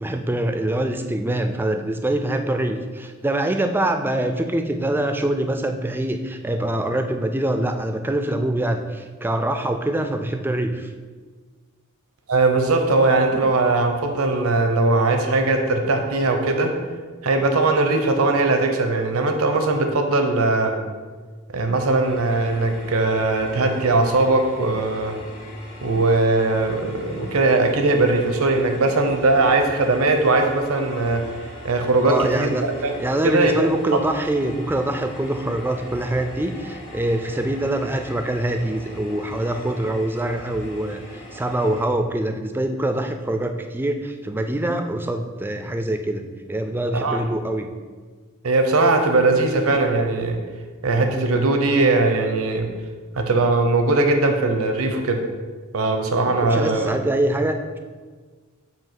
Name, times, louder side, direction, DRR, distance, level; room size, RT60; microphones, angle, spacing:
voice 1, 0.0-10.9 32.1-32.7 33.0-46.2 46.5-47.7 56.4-57.8, right 1 dB, 10° right, 6 dB, 0.3 m, -24 dB
voice 2, 12.3-16.7 17.2-20.7 21.5-25.2 25.8-31.2 31.6-32.5 32.8-33.0 33.2-33.7 46.9-47.2 48.4-50.4 50.8-52.7 53.2-55.2 55.7-56.9, right 2 dB, 85° right, 4 dB, 0.7 m, -20 dB
sound 1, 22.0-41.9, left 1 dB, 55° left, 1.8 m, -40 dB
7.3 x 2.8 x 5.8 m, 1.5 s
head